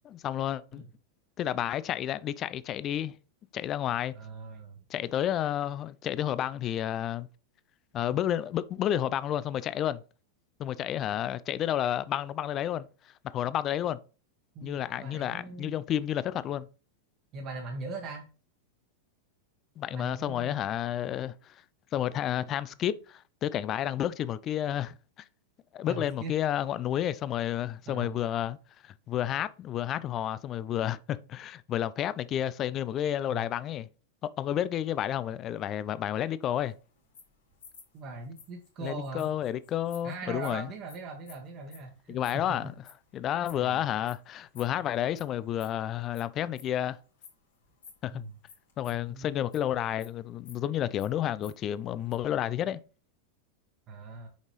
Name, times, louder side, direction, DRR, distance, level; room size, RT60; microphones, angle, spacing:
voice 1, 0.2-0.8 1.4-3.1 3.5-4.1 4.9-7.3 7.9-10.0 10.6-12.9 13.3-14.0 14.6-16.7 19.8-21.5 21.9-24.9 25.7-28.6 28.8-33.9 34.4-36.7 38.8-40.7 42.1-42.7 43.1-47.0 48.0-48.2 48.8-52.8, left 11 dB, 30° left, 0.4 m, -31 dB
voice 2, 4.1-4.8 8.1-8.2 14.5-15.8 17.3-18.3 19.9-20.7 25.9-26.3 27.9-28.2 33.3-33.4 37.9-39.3 40.0-42.6 43.6-43.8 48.1-48.4 49.1-49.4 53.9-54.3, right 3 dB, 35° right, 1.2 m, -40 dB
sound 1, 36.5-43.7 44.1-44.3 44.5-45.2 45.5-48.0 48.4-49.7 50.0-51.6 51.9-52.2, left 5 dB, 65° left, 2.3 m, -53 dB
6.3 x 5.3 x 3.1 m
figure-of-eight pair, 90°, 0 cm